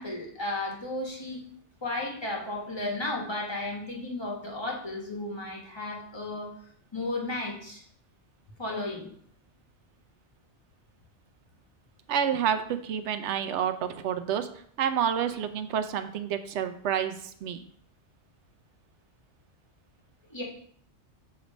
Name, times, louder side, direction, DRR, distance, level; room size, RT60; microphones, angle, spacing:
voice 1, 0.0-1.4 1.8-6.5 6.9-7.8 8.6-9.1 20.3-20.4, left 2 dB, 25° left, -2 dB, 1.4 m, -34 dB
voice 2, 12.1-14.5 14.8-17.6, right 8 dB, 80° right, 9 dB, 0.9 m, -29 dB
7.0 x 3.2 x 5.0 m, 0.62 s
omnidirectional pair, 1.2 m